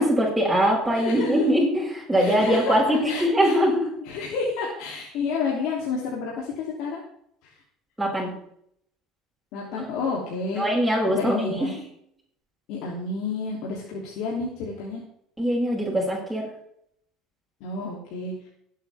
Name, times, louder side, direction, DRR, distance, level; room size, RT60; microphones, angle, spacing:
voice 1, 0.0-3.9 8.0-8.4 10.6-11.8 15.4-16.5, equal, ahead, -6 dB, 6.1 m, -22 dB
voice 2, 0.9-1.3 2.1-2.8 3.1-3.6 4.0-7.0 9.5-10.7 11.1-11.7 12.7-15.0 17.6-18.3, left 4 dB, 70° left, -3 dB, 3.0 m, -30 dB
20.0 x 8.4 x 3.5 m, 0.70 s
supercardioid pair, 90°, 0 cm